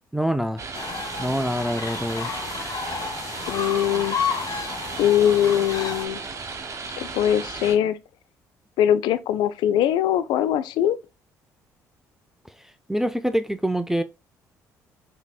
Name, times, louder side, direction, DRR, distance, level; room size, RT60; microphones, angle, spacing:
voice 1, 0.1-0.6 1.2-2.3 12.9-14.0, equal, 5° right, 0.4 m, -25 dB
sound 1, 0.6-7.8, right 4 dB, 40° right, 0.9 m, -35 dB
sound 2, 0.7-6.0, left 5 dB, 45° left, 1.0 m, -31 dB
voice 2, 3.5-4.2 5.0-6.2 7.0-8.0 8.8-11.0, left 10 dB, 65° left, 0.4 m, -21 dB
5.7 x 2.8 x 2.2 m
hypercardioid pair, 55°, 8 cm